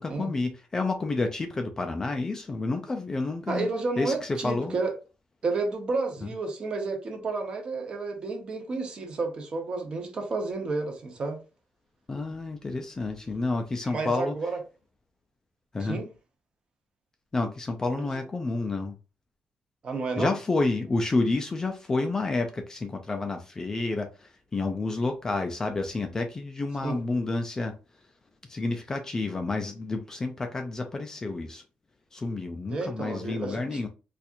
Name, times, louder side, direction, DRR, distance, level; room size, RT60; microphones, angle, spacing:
voice 1, 0.0-3.7 4.0-4.8 12.1-14.3 15.7-16.0 17.3-19.0 20.2-27.8 28.5-31.6 32.1-33.9, left 3 dB, 20° left, 0.3 m, -29 dB
voice 2, 3.5-4.9 5.4-11.4 13.8-14.6 15.8-16.1 19.8-20.3 26.8-27.0 32.7-33.8, right 3 dB, 35° right, 0.9 m, -31 dB
4.2 x 2.4 x 2.5 m
cardioid pair, 160°, 3 cm